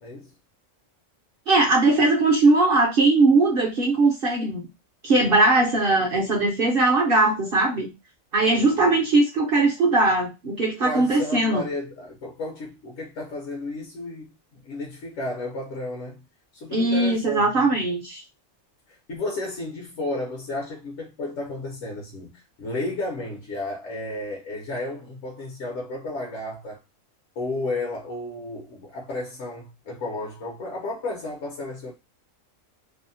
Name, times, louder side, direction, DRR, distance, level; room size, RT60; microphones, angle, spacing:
voice 1, 0.0-0.3 10.8-16.2 16.5-17.7 18.9-26.8 27.4-31.9, left 2 dB, 65° left, 0.9 m, -33 dB
voice 2, 1.5-4.7 5.0-7.9 8.3-11.6 16.7-18.2, right 2 dB, 55° right, 0.7 m, -20 dB
2.7 x 2.0 x 2.6 m
omnidirectional pair, 1.4 m